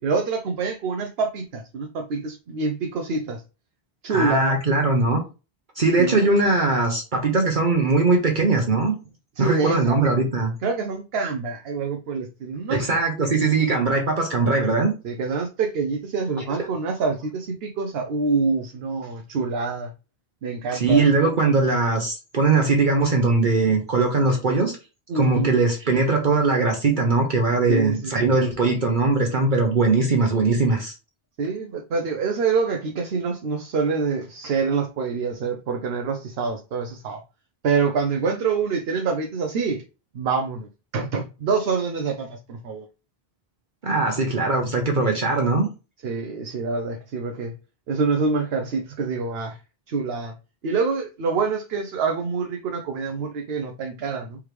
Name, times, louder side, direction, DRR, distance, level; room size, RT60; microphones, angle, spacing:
voice 1, 0.0-3.4 4.0-4.6 6.0-6.2 9.4-10.0 10.6-13.0 15.0-19.9 20.4-21.0 25.1-25.5 27.7-28.4 31.4-37.2 37.6-39.8 40.1-42.9 46.0-47.5 47.9-49.6 49.9-50.3 50.6-54.4, right 4 dB, 80° right, 0.9 m, -26 dB
voice 2, 4.1-5.2 5.8-8.9 9.4-10.5 12.7-14.9 20.7-24.8 25.1-30.9 43.8-45.7, right 3 dB, 55° right, 1.0 m, -20 dB
4.8 x 3.5 x 3.1 m
omnidirectional pair, 1.0 m